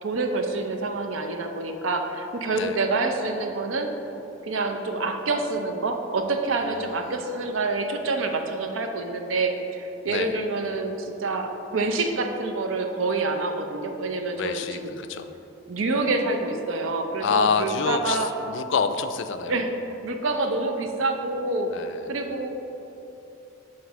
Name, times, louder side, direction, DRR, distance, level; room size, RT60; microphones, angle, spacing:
voice 1, 0.0-3.9 4.4-14.9 15.7-18.3 19.5-22.5, right 3 dB, 90° right, 5 dB, 0.6 m, -27 dB
voice 2, 14.4-15.3 17.2-18.2 18.5-19.6 21.7-22.0, left 6 dB, 65° left, 9 dB, 0.4 m, -27 dB
7.4 x 3.2 x 6.0 m, 3.0 s
head